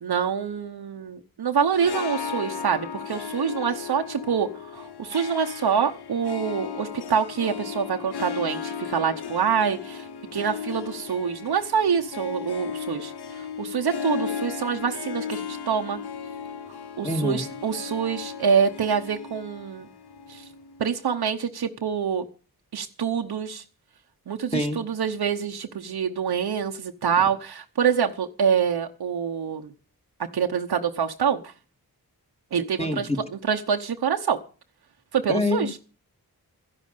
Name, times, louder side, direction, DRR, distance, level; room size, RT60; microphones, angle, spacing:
voice 1, 0.0-10.0 10.3-16.0 17.0-19.9 20.3-20.4 20.8-22.3 22.7-23.6 24.3-29.7 30.3-31.5 32.5-33.1 33.5-34.4 35.1-35.7, right 7 dB, 90° right, 4 dB, 1.0 m, -26 dB
Harp, 1.6-21.0, left 7 dB, 85° left, 0.9 m, -36 dB
voice 2, 17.0-17.5 24.5-24.8 32.8-33.2 35.3-35.8, left 1 dB, 15° left, 4 dB, 2.2 m, -25 dB
12.0 x 11.0 x 6.7 m, 0.38 s
wide cardioid pair, 85°, 38 cm